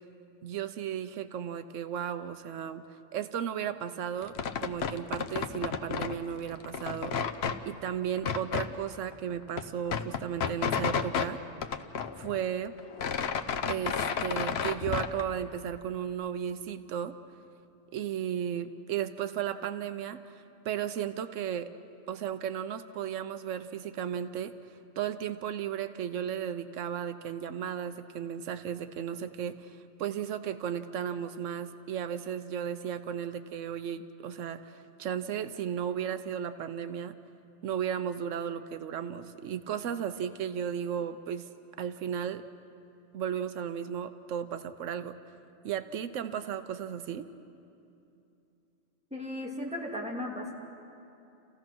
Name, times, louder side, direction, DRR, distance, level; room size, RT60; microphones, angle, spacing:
voice 1, 0.4-2.8 3.1-7.2 7.6-11.4 12.2-12.7 13.6-17.2 17.9-21.7 22.1-37.1 37.6-41.5 41.8-42.4 43.1-45.2 45.6-47.3, right 9 dB, 90° right, 11 dB, 1.1 m, -35 dB
sound 1, 4.2-6.2 6.5-7.6 8.2-8.7 9.1-9.2 9.4-11.3 11.6-12.5 12.8-15.2, left 6 dB, 60° left, 1.0 m, -31 dB
voice 2, 49.1-50.5, left 1 dB, 5° right, -2 dB, 2.4 m, -36 dB
29.0 x 15.5 x 6.1 m, 2.7 s
omnidirectional pair, 1.3 m